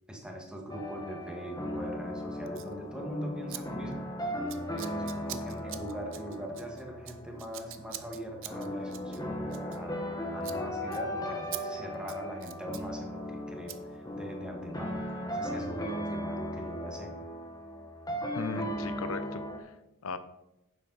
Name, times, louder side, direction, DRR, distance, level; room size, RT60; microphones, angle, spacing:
voice 1, 0.1-4.4 4.7-17.1, equal, 5° right, 1 dB, 1.6 m, -41 dB
sound 1, 0.7-19.6, equal, 15° left, 1.1 m, -37 dB
Scissors, 2.5-2.7 3.5-3.6 3.9-4.1 4.5-10.1 10.4-10.6 10.9-11.0 11.5-11.6 11.9-12.9 13.7-13.8, right 13 dB, 60° right, 0.6 m, -44 dB
voice 2, 18.3-19.7 20.0-20.2, left 4 dB, 65° left, 11 dB, 0.7 m, -37 dB
10.0 x 7.5 x 4.0 m, 0.91 s
head